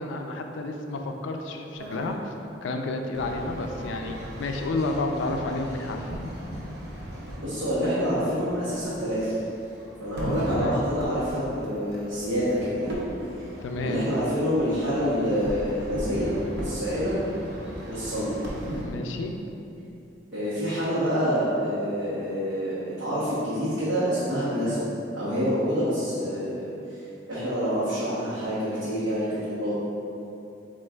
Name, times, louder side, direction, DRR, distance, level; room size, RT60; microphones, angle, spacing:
voice 1, 0.0-2.3 2.6-6.2 10.5-10.7 13.6-14.0 18.8-19.3, left 2 dB, 75° left, 4 dB, 0.3 m, -31 dB
sound 1, 1.8-2.1 3.1-18.8, equal, 55° right, 0.7 m, -37 dB
voice 2, 7.4-9.2 10.0-12.9 13.8-17.2 17.8-18.4 20.3-26.6 26.9-27.0 27.3-29.8, equal, 75° right, -12 dB, 1.0 m, -27 dB
7.4 x 2.5 x 2.4 m, 2.7 s
head